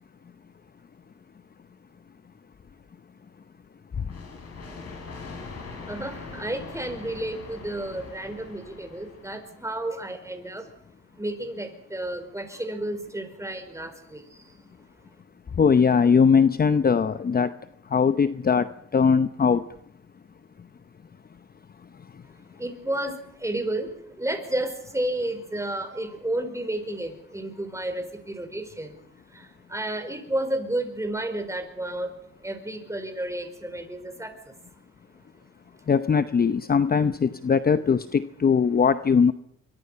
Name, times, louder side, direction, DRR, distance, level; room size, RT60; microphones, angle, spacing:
sound 1, 4.0-9.6, left 4 dB, 55° left, 8.0 m, -42 dB
voice 1, 5.9-10.7 11.2-14.6 22.6-29.0 29.3-32.1 32.4-34.5, right 1 dB, 10° right, 8 dB, 4.8 m, -32 dB
voice 2, 15.5-17.5 17.8-19.6 22.1-22.2 35.9-39.3, left 6 dB, 30° left, 11 dB, 0.8 m, -21 dB
26.5 x 23.5 x 5.7 m, 0.72 s
cardioid pair, 90°, 30 cm